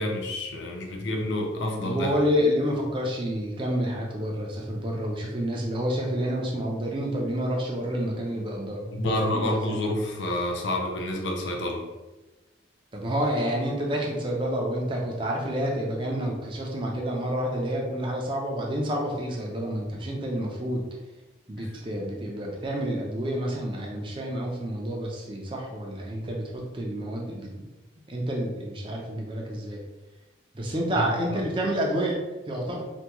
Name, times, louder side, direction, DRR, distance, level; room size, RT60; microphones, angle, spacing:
voice 1, 0.0-2.1 8.9-11.8 21.6-21.7 31.0-31.4, left 1 dB, 70° left, 1 dB, 0.5 m, -29 dB
voice 2, 1.8-9.8 12.9-20.8 21.5-27.7 28.1-29.8 30.5-32.2 32.5-32.8, equal, 25° right, -1 dB, 0.5 m, -29 dB
3.4 x 2.3 x 2.9 m, 1.1 s
head